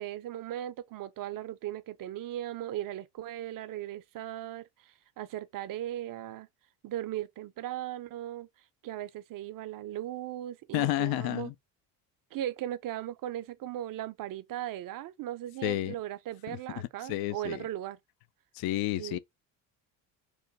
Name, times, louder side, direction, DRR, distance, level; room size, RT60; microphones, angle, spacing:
voice 1, 0.0-6.5 6.8-8.5 8.8-11.5 12.3-18.0 19.0-19.2, right 12 dB, 45° right, 0.5 m, -38 dB
voice 2, 10.7-11.5 15.6-16.0 16.5-17.6 18.5-19.2, left 15 dB, 55° left, 0.5 m, -31 dB
3.1 x 2.1 x 3.9 m
supercardioid pair, 70°, 47 cm